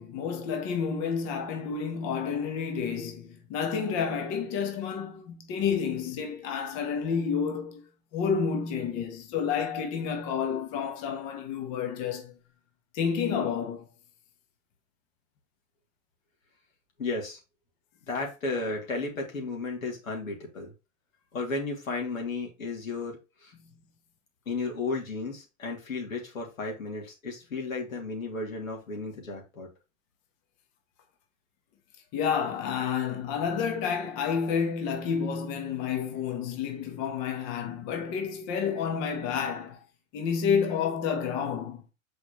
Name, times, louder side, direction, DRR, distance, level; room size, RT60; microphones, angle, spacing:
voice 1, 0.0-7.8 8.1-12.3 12.9-13.9 23.6-23.7 32.1-39.8 40.1-41.8, left 6 dB, 40° left, 1.6 m, -30 dB
voice 2, 17.0-17.4 18.1-20.7 21.3-23.5 24.5-29.7, left 3 dB, 80° left, 3.0 m, -34 dB
6.6 x 5.0 x 3.2 m
hypercardioid pair, 110°, 40 cm